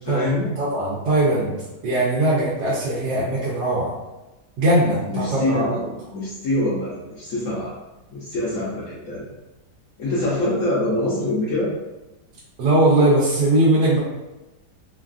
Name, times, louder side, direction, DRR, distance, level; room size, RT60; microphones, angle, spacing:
voice 1, 0.0-0.5 5.1-5.8 6.1-7.7 8.1-9.3 10.0-11.7, left 1 dB, 65° left, -6 dB, 0.8 m, -24 dB
voice 2, 0.6-1.5 1.8-4.0 4.6-5.9 12.6-14.0, right 1 dB, 85° right, -7 dB, 1.3 m, -20 dB
3.2 x 2.3 x 2.4 m, 1.0 s
omnidirectional pair, 1.8 m